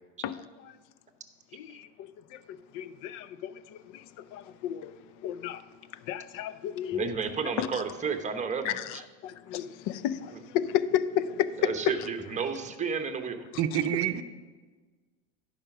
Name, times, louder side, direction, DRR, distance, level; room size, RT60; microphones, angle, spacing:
voice 1, 1.5-2.4 2.7-4.0 4.3-4.9 5.2-5.6 6.0-7.1 7.6-7.7 8.6-12.0, left 9 dB, 55° left, 0.6 m, -32 dB
voice 2, 6.9-9.0 11.6-13.5, right 5 dB, 20° right, 1.0 m, -32 dB
voice 3, 13.6-14.2, right 10 dB, 40° right, 0.7 m, -27 dB
11.0 x 5.1 x 6.0 m
supercardioid pair, 100°, 36 cm